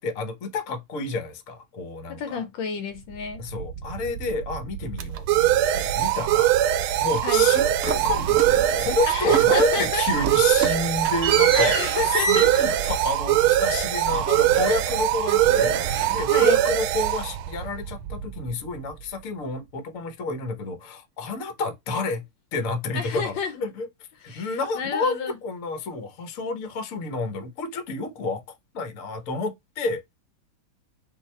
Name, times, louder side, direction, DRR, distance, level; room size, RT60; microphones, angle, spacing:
voice 1, 0.0-2.4 3.4-11.7 12.0-15.8 16.1-22.2 22.5-23.9 24.2-30.0, left 3 dB, 55° left, 1.0 m, -30 dB
voice 2, 2.2-3.4 7.2-7.5 9.1-10.0 11.5-12.5 16.3-16.6 22.9-23.5 24.3-25.4, left 6 dB, 70° left, 1.3 m, -30 dB
sound 1, 3.4-18.8, right 13 dB, 90° right, 1.4 m, -22 dB
sound 2, 7.8-9.0 9.3-9.8 10.1-15.0 15.3-16.6, right 6 dB, 65° right, 0.7 m, -30 dB
3.9 x 2.7 x 4.2 m
omnidirectional pair, 2.3 m